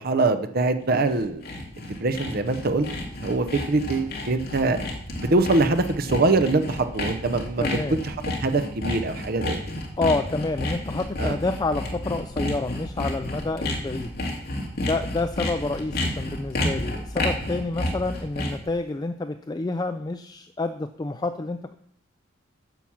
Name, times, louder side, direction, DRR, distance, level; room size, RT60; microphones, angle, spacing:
voice 1, 0.0-1.4 1.8-2.9 3.2-4.8 5.2-8.2 8.4-9.6 11.2-11.4, right 3 dB, 50° right, 8 dB, 0.7 m, -23 dB
Sawing, 0.9-18.7, left 1 dB, 50° left, 2.2 m, -30 dB
voice 2, 7.6-8.0 10.0-14.1 14.8-21.6, left 3 dB, 20° left, 9 dB, 0.3 m, -28 dB
9.2 x 5.8 x 7.3 m, 0.65 s
head